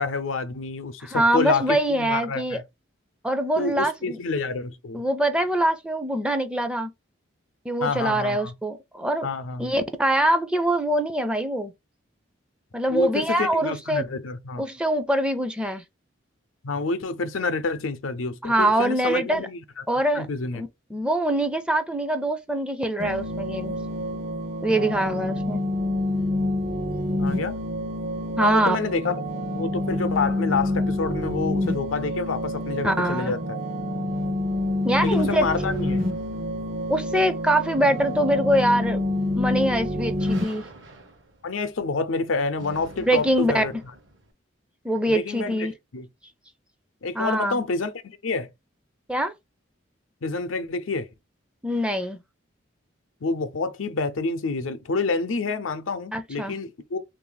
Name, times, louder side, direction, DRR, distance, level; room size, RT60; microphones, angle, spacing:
voice 1, 0.0-2.6 3.6-5.0 7.8-8.5 9.2-9.7 12.9-14.6 16.6-19.8 20.1-20.6 27.2-27.6 28.4-29.2 29.5-33.6 35.0-36.1 41.4-43.7 45.1-46.1 47.0-48.5 50.2-51.1 53.2-57.0, left 4 dB, 90° left, 0.6 m, -28 dB
voice 2, 1.0-2.6 3.2-4.2 4.9-6.9 7.7-9.3 9.6-11.7 12.7-14.0 14.6-15.8 18.4-19.5 19.9-20.3 20.5-23.7 24.6-25.6 28.4-28.8 32.8-33.4 34.8-35.5 36.9-39.0 39.3-40.6 43.1-43.6 44.8-45.7 47.2-47.6 49.1-49.3 51.6-52.2 56.1-56.5, right 1 dB, 5° right, 0.4 m, -23 dB
sound 1, 23.0-40.4, left 1 dB, 45° right, 0.6 m, -27 dB
sound 2, 33.9-44.3, right 1 dB, 65° right, 0.9 m, -47 dB
3.2 x 2.6 x 3.9 m
head